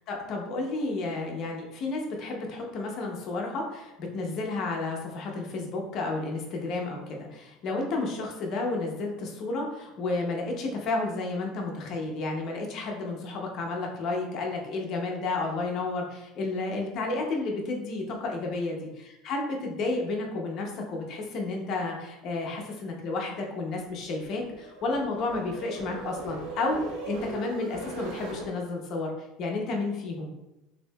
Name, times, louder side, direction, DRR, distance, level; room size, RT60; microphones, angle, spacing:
voice 1, 0.1-18.8 19.2-30.3, left 3 dB, 35° left, 1 dB, 0.6 m, -31 dB
sound 1, 23.8-28.5, right 2 dB, 75° right, 1.0 m, -39 dB
6.1 x 2.7 x 2.2 m, 0.95 s
cardioid pair, 175°, 0 cm